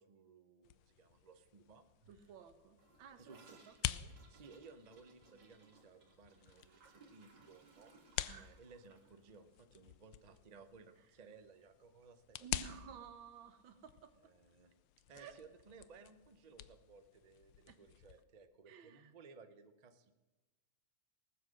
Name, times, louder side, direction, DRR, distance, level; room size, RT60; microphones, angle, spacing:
voice 1, 0.0-2.3 3.2-3.4 4.3-7.9 8.4-12.4 14.2-14.7 15.1-20.2, right 4 dB, 45° right, 8 dB, 0.5 m, -60 dB
sound 1, 0.6-18.2, left 13 dB, 80° left, 1.3 m, -49 dB
voice 2, 2.1-4.1 8.2-8.6 11.0-11.1 12.4-14.3 15.1-15.4 17.7-17.8 18.7-19.1, right 8 dB, 85° right, 9 dB, 1.8 m, -55 dB
Gurgling / Toilet flush, 2.8-11.0 11.3-11.4 11.7-12.2 12.4-12.5 12.8-12.9 13.9-14.0, right 3 dB, 70° right, 2.5 m, -66 dB
19.0 x 7.6 x 6.4 m, 1.2 s
omnidirectional pair, 2.1 m